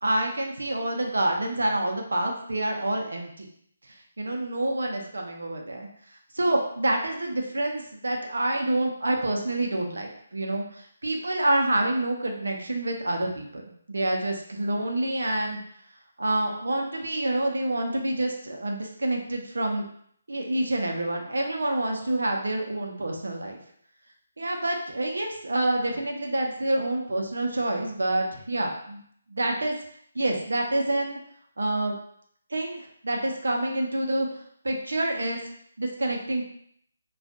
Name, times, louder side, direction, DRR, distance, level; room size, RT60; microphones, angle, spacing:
voice 1, 0.0-3.5 3.9-5.9 6.3-13.6 13.9-15.6 16.2-19.9 20.3-23.6 24.4-29.0 29.3-29.7 30.1-31.2 31.6-32.0 32.5-34.3 34.6-35.4 35.8-36.4, right 1 dB, 90° right, 2 dB, 0.7 m, -27 dB
2.4 x 2.3 x 3.7 m, 0.65 s
hypercardioid pair, 160°, 0 cm